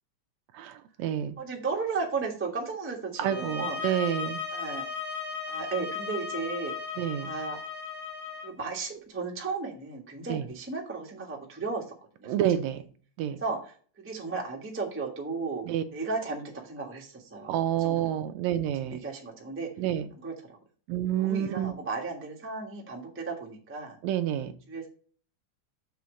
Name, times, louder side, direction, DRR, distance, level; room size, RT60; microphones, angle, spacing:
voice 1, 0.5-1.4 3.2-4.4 7.0-7.3 10.3-10.4 12.3-12.8 13.2-13.4 15.7-15.8 17.5-19.0 19.8-20.1 20.9-21.7 24.0-24.5, right 11 dB, 75° right, 10 dB, 1.8 m, -28 dB
voice 2, 1.4-4.0 4.5-4.8 5.5-6.7 7.2-7.6 8.4-11.9 12.2-12.3 13.4-15.7 15.9-18.2 18.8-19.7 20.2-20.6 21.1-24.0 24.7-24.9, right 4 dB, 15° right, -1 dB, 0.4 m, -35 dB
sound 1, 3.2-8.5, left 5 dB, 50° left, 1.7 m, -36 dB
7.0 x 3.8 x 6.2 m, 0.42 s
omnidirectional pair, 3.4 m